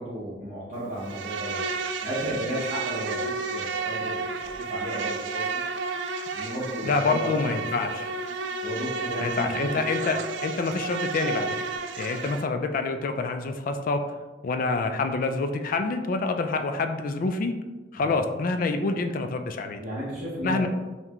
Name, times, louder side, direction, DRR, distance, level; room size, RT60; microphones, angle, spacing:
voice 1, 0.0-1.6 2.0-5.6 6.3-7.4 7.8-8.0 8.6-9.7 10.0-10.1 18.0-18.2 19.8-20.7, equal, 40° right, -8 dB, 0.8 m, -34 dB
Insect, 1.0-12.5, right 4 dB, 75° right, 0.3 m, -32 dB
voice 2, 6.8-8.1 9.2-11.5 12.0-14.0 14.4-17.5 17.9-19.8 20.4-20.7, left 3 dB, 50° left, 7 dB, 0.3 m, -27 dB
5.7 x 2.2 x 2.9 m, 1.2 s
head